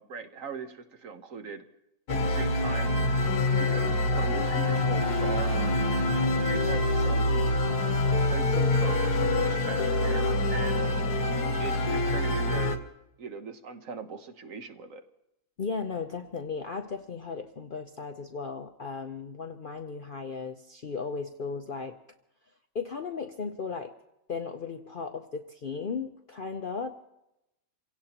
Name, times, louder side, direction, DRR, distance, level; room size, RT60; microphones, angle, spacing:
voice 1, 0.0-1.6 2.1-3.1 3.6-5.8 6.4-7.4 8.3-11.0 11.4-12.7 13.2-15.0, right 5 dB, 60° right, 7 dB, 1.4 m, -40 dB
sound 1, 2.1-12.8, left 2 dB, 90° left, 1.7 m, -26 dB
voice 2, 15.6-22.0 22.7-23.9 24.3-26.9, left 5 dB, 50° left, 5 dB, 0.6 m, -36 dB
27.5 x 17.0 x 2.9 m, 0.89 s
omnidirectional pair, 1.6 m